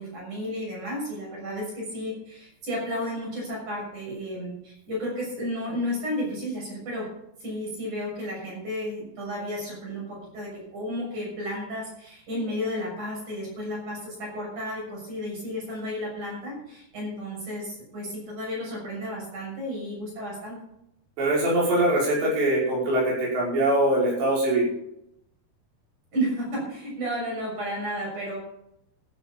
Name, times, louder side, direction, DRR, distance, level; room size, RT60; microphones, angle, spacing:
voice 1, 0.0-7.1 7.4-20.6 26.1-28.4, equal, 45° right, -3 dB, 7.8 m, -32 dB
voice 2, 21.2-24.7, right 1 dB, 85° right, -5 dB, 7.8 m, -22 dB
14.0 x 10.5 x 5.4 m, 0.80 s
omnidirectional pair, 4.9 m